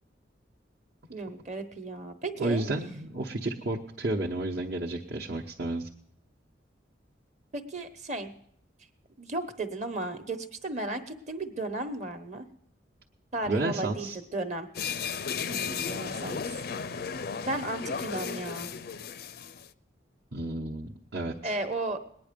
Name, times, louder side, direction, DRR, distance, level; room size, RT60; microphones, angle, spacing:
voice 1, 1.1-2.6 7.5-8.3 9.2-12.5 13.3-14.7 15.5-16.4 17.0-18.7 21.4-22.0, right 2 dB, 40° right, 8 dB, 1.1 m, -34 dB
voice 2, 2.4-5.9 13.5-14.2 20.3-21.6, right 2 dB, 65° right, -2 dB, 1.0 m, -32 dB
sound 1, 14.7-19.7, left 6 dB, 55° left, 0.4 m, -35 dB
20.0 x 9.6 x 5.2 m, 0.69 s
head